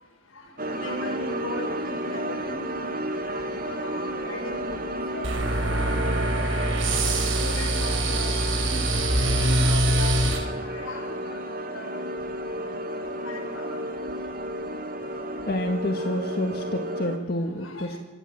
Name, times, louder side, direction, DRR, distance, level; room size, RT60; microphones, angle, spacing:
sound 1, 0.6-17.2, right 1 dB, 45° right, 2.6 m, -32 dB
voice 1, 0.8-2.6 3.3-4.8 5.1-5.3 7.4-8.3 8.6-8.8 9.1-10.3 10.7-11.1 11.7-11.9 13.2-13.7 17.6-18.0, left 1 dB, 90° left, 7.5 m, -38 dB
sound 2, 5.2-10.4, right 1 dB, 70° right, 5.9 m, -24 dB
voice 2, 15.5-18.0, left 1 dB, 50° left, 2.0 m, -28 dB
27.5 x 22.0 x 7.8 m
head